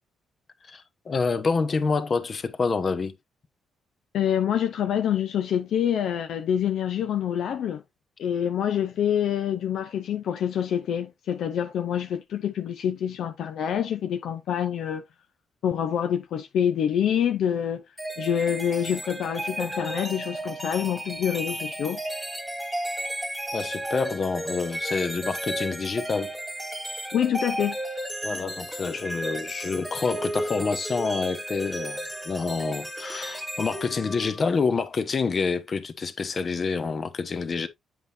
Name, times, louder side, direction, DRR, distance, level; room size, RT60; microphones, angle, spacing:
voice 1, 0.7-3.2 23.5-26.3 28.2-32.0 32.2-37.7, left 4 dB, 40° left, 1.0 m, -27 dB
voice 2, 4.1-7.8 8.2-15.0 15.6-17.8 18.2-22.0 27.1-27.8, left 9 dB, 70° left, 0.6 m, -26 dB
sound 1, 18.0-34.6, right 1 dB, 5° right, 1.9 m, -34 dB
7.8 x 5.5 x 2.6 m
cardioid pair, 90°, 0 cm